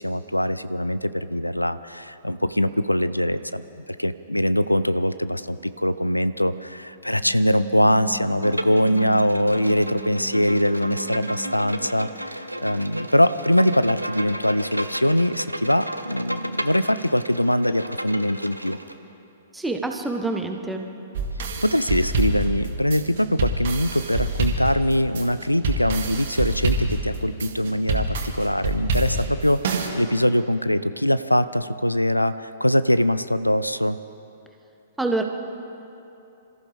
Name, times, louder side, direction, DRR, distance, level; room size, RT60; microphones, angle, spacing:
voice 1, 0.0-3.6 4.0-18.8 21.6-34.0, equal, 85° left, 14 dB, 0.4 m, -22 dB
sound 1, 7.0-12.3 12.6-18.9, right 4 dB, 55° left, 3.8 m, -43 dB
Bowed string instrument, 8.4-18.9, right 1 dB, 85° right, 0.8 m, -33 dB
voice 2, 19.5-20.9 35.0-35.2, right 2 dB, 5° right, 3 dB, 1.2 m, -26 dB
sound 2, 21.2-29.9, right 2 dB, 50° right, 2.1 m, -27 dB
27.5 x 14.5 x 3.5 m, 2.8 s
figure-of-eight pair, 110°, 0 cm